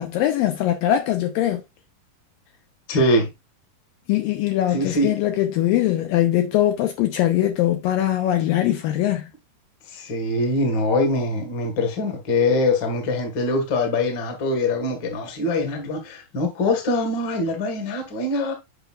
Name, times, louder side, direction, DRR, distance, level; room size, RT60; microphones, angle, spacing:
voice 1, 0.0-1.6 4.1-9.3, left 12 dB, 80° left, 2.2 m, -21 dB
voice 2, 2.9-3.3 4.7-5.1 9.9-18.5, left 2 dB, 45° left, 1.5 m, -23 dB
8.1 x 5.2 x 2.4 m
omnidirectional pair, 4.4 m